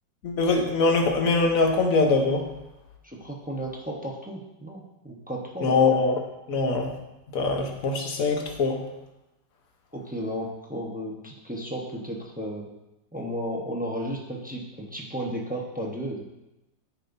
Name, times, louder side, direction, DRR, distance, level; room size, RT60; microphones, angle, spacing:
voice 1, 0.2-2.5 5.6-6.2 6.5-7.0 7.3-8.8, left 3 dB, 55° left, 3 dB, 1.3 m, -23 dB
voice 2, 3.0-5.7 9.9-12.7 13.1-16.2, equal, 10° right, -2 dB, 0.6 m, -34 dB
12.5 x 5.3 x 2.7 m, 0.96 s
omnidirectional pair, 2.0 m